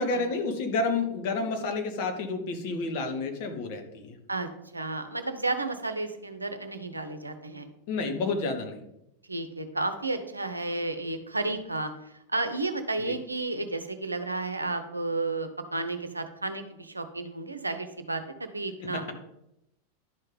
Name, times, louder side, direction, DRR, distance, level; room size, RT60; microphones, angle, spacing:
voice 1, 0.0-4.1 7.9-8.8 13.1-13.2 18.8-19.1, left 3 dB, 45° left, 4 dB, 1.5 m, -30 dB
voice 2, 4.3-7.7 9.3-19.1, right 2 dB, 80° right, 8 dB, 0.8 m, -32 dB
11.5 x 5.4 x 3.9 m, 0.83 s
figure-of-eight pair, 90°, 0 cm